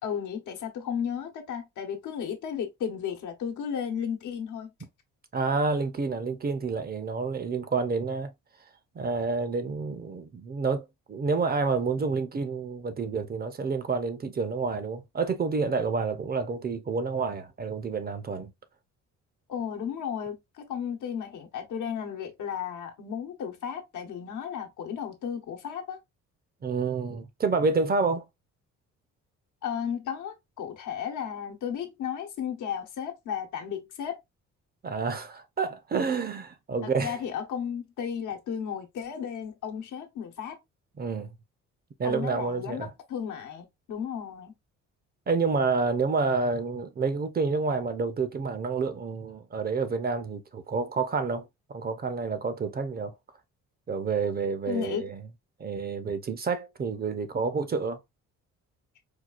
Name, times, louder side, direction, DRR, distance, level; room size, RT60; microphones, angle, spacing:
voice 1, 0.0-4.7 19.5-26.0 29.6-34.2 36.8-40.6 42.0-44.5 54.7-55.1, left 8 dB, 80° left, 1.0 m, -34 dB
voice 2, 5.3-8.3 8.9-18.5 26.6-28.2 34.8-37.2 41.0-41.3 42.0-42.9 45.3-53.1 53.9-55.2 55.6-58.0, right 4 dB, 30° right, 0.6 m, -29 dB
4.5 x 2.3 x 2.3 m
cardioid pair, 90°, 30 cm